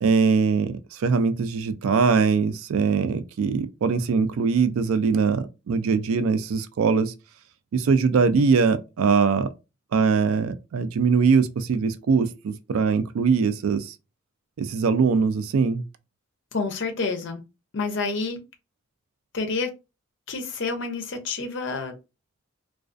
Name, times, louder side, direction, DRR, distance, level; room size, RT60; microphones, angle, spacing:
voice 1, 0.0-7.1 7.7-9.5 9.9-13.9 14.6-15.8, right 5 dB, 80° right, 0.3 m, -22 dB
voice 2, 16.5-17.4 17.7-18.4 19.3-19.7 20.3-21.9, left 4 dB, 55° left, 0.5 m, -28 dB
2.3 x 2.2 x 2.4 m
head